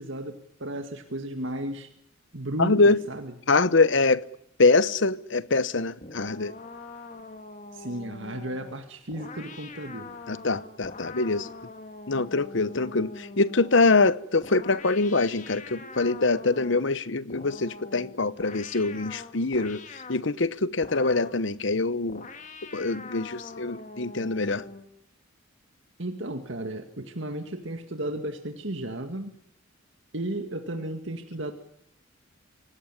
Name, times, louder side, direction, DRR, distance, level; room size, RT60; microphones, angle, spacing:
voice 1, 0.0-1.9 2.3-3.3 7.7-10.1 26.0-29.3 30.1-31.5, right 1 dB, 60° right, 2.1 m, -34 dB
voice 2, 2.6-3.0 3.5-4.2 4.6-6.5 10.3-11.5 12.1-22.3 22.7-24.7, left 3 dB, 60° left, 1.0 m, -24 dB
sound 1, 6.0-13.8 14.4-16.9 17.3-20.3 20.8-21.5 22.1-24.9, left 3 dB, 35° left, 2.2 m, -44 dB
25.5 x 18.5 x 9.8 m
head